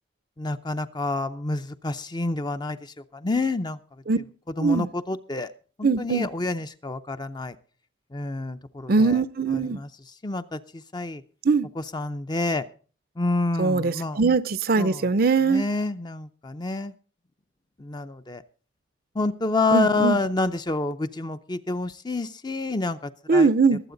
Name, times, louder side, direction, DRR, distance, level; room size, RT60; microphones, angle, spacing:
voice 1, 0.4-3.8 4.6-5.5 5.8-7.6 8.1-9.2 9.5-11.2 11.8-12.6 13.2-14.2 14.8-15.1 15.4-16.9 17.8-18.4 19.1-23.5, left 3 dB, 25° left, 0.6 m, -28 dB
voice 2, 5.8-6.3 8.9-9.8 11.4-11.7 13.6-15.6 19.7-20.2 23.3-23.8, right 4 dB, 50° right, 0.5 m, -21 dB
22.0 x 7.8 x 3.9 m
head